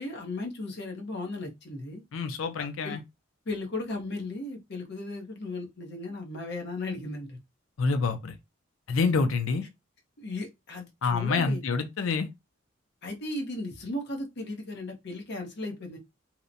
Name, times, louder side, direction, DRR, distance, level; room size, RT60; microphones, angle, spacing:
voice 1, 0.0-2.0 2.6-3.0 3.5-7.4 10.2-11.6 13.0-16.0, left 2 dB, 60° left, 0.8 m, -36 dB
voice 2, 2.1-3.0 7.8-8.3 8.9-9.6 11.0-12.3, left 4 dB, 85° left, 0.5 m, -27 dB
2.8 x 2.1 x 2.5 m
head